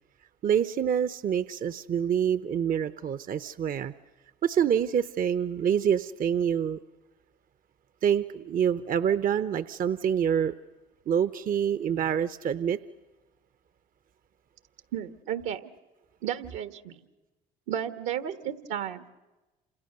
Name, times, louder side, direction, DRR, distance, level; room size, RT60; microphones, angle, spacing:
voice 1, 0.4-3.9 4.4-6.8 8.0-10.5 11.1-12.8, right 8 dB, 45° right, 14 dB, 0.8 m, -26 dB
voice 2, 14.9-15.6 16.2-17.0 17.7-19.1, right 10 dB, 75° right, 10 dB, 1.5 m, -33 dB
28.0 x 27.0 x 6.7 m, 1.1 s
hypercardioid pair, 65°, 21 cm